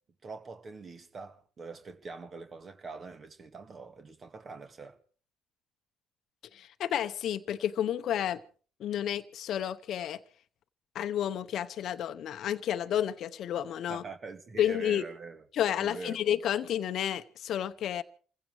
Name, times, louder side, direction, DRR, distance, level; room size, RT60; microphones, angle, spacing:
voice 1, 0.2-5.0 13.9-15.4 15.8-16.2, right 4 dB, 40° right, 1.9 m, -44 dB
voice 2, 6.5-8.4 8.8-10.2 10.9-14.0 14.6-15.0 15.5-18.0, left 10 dB, 60° left, 0.8 m, -31 dB
28.5 x 16.0 x 3.1 m
hypercardioid pair, 60°, 0 cm